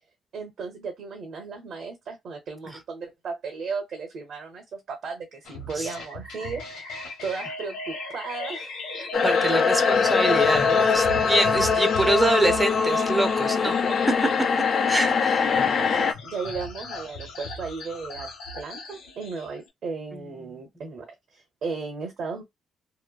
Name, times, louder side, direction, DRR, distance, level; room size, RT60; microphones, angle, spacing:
voice 1, 0.3-7.0 7.2-8.8 13.4-13.9 15.5-18.3 18.5-22.4, right 4 dB, 65° right, 0.8 m, -35 dB
sound 1, 5.4-19.6, left 2 dB, 90° left, 1.0 m, -38 dB
voice 2, 9.0-13.7 14.9-15.4 20.1-20.3, right 1 dB, 10° right, 0.7 m, -25 dB
sound 2, 9.1-16.1, left 5 dB, 50° left, 0.4 m, -22 dB
3.0 x 2.1 x 2.3 m
cardioid pair, 90°, 0 cm